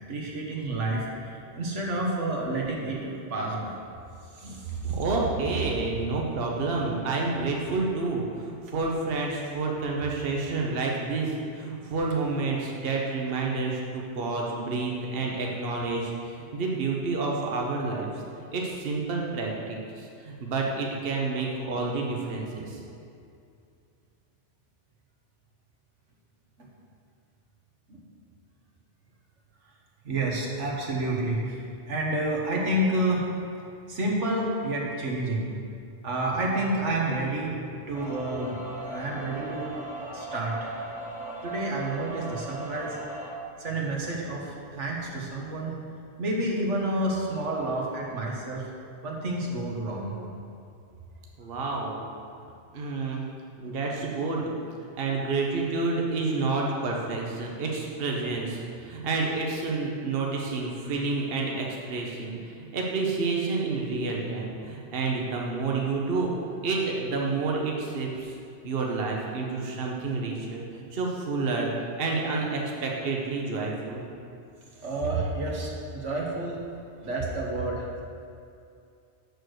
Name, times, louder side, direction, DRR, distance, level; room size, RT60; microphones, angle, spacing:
voice 1, 0.1-3.8 4.3-4.9 26.6-26.7 27.9-28.0 30.0-33.3 33.9-35.4 36.0-37.5 37.9-38.6 38.8-39.7 40.1-40.7 41.4-43.0 43.6-45.8 46.2-48.6 49.0-50.1 74.8-76.7 77.0-78.0, right 1 dB, 80° right, -2 dB, 1.6 m, -29 dB
voice 2, 4.8-18.1 18.4-22.8 51.4-52.0 52.7-54.5 55.0-66.3 66.6-68.4 68.6-71.7 72.0-74.0, right 3 dB, 55° right, -1 dB, 1.1 m, -29 dB
sound 1, 37.9-43.3, right 2 dB, 5° right, 1.2 m, -38 dB
6.8 x 6.5 x 6.4 m, 2.5 s
omnidirectional pair, 1.2 m